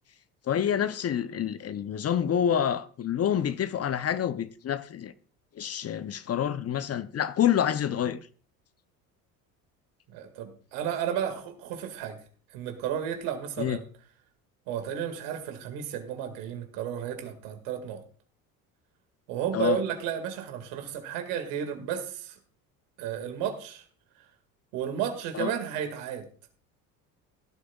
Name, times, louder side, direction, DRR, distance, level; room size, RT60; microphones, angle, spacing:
voice 1, 0.5-5.1 5.6-8.2 13.6-13.8 19.5-19.8 25.3-25.5, left 9 dB, 35° left, 0.7 m, -27 dB
voice 2, 10.1-12.2 12.5-13.8 14.7-18.0 19.3-22.3 23.0-23.8 24.7-26.2, right 9 dB, 70° right, 2.2 m, -33 dB
17.0 x 11.5 x 2.4 m
hypercardioid pair, 65°, 44 cm